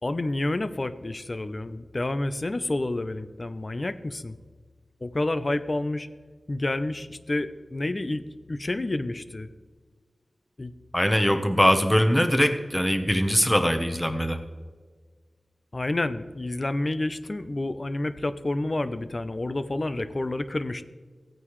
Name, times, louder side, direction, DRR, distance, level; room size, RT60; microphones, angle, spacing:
voice 1, 0.0-4.3 5.0-6.1 6.5-9.5 10.6-10.7 15.7-20.9, left 2 dB, 35° left, 12 dB, 0.6 m, -29 dB
voice 2, 10.9-14.4, equal, 5° left, 7 dB, 1.1 m, -22 dB
16.0 x 9.1 x 3.2 m, 1.5 s
wide cardioid pair, 70°, 0 cm